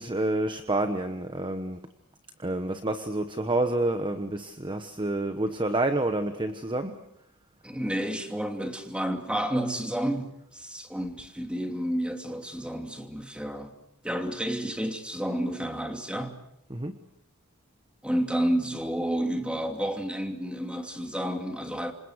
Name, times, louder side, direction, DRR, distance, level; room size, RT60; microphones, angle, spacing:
voice 1, 0.0-1.8 2.4-7.0 16.7-16.9, right 2 dB, 20° right, 1.1 m, -28 dB
voice 2, 7.6-13.7 14.0-16.4 18.0-21.9, equal, 5° right, 2.7 m, -30 dB
28.5 x 26.0 x 6.5 m
head